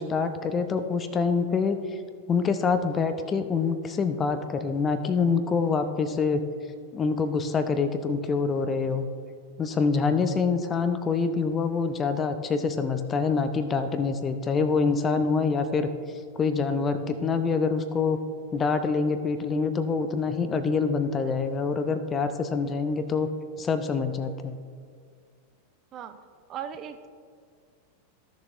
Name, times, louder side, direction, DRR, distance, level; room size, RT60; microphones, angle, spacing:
voice 1, 0.0-2.0 2.3-6.4 6.9-9.1 9.6-15.9 16.4-18.2 18.5-23.3 23.6-24.6, left 5 dB, 20° left, 9 dB, 0.5 m, -26 dB
voice 2, 25.9-27.1, right 8 dB, 30° right, 9 dB, 0.6 m, -38 dB
14.0 x 6.8 x 2.5 m, 2.1 s
figure-of-eight pair, 90°, 0 cm